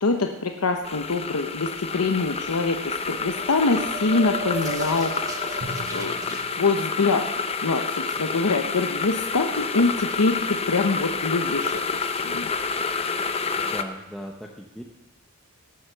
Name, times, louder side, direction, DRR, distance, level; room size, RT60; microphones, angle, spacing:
voice 1, 0.0-6.1 6.6-7.3 7.6-12.5, left 3 dB, 85° left, 4 dB, 0.9 m, -25 dB
sound 1, 0.8-13.8, left 4 dB, 30° left, 0.7 m, -29 dB
sound 2, 3.3-6.4, right 2 dB, 15° right, 1.5 m, -35 dB
Drum, 5.6-8.0, right 2 dB, 35° right, 1.7 m, -42 dB
voice 2, 13.5-14.8, equal, ahead, -1 dB, 0.9 m, -38 dB
18.5 x 7.9 x 6.8 m, 1.0 s
head